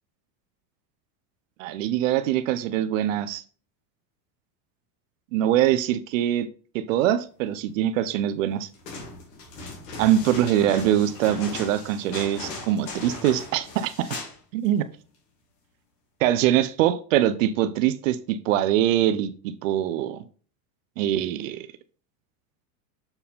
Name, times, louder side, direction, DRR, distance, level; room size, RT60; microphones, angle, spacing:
voice 1, 1.6-3.4 5.3-6.5 6.7-8.7 10.0-14.1 14.5-14.8 16.2-20.2 21.0-21.7, right 11 dB, 55° right, 0.5 m, -23 dB
sound 1, 8.7-14.4 14.7-14.8, left 3 dB, 90° left, 2.7 m, -38 dB
6.8 x 4.6 x 3.5 m
supercardioid pair, 175°, 48 cm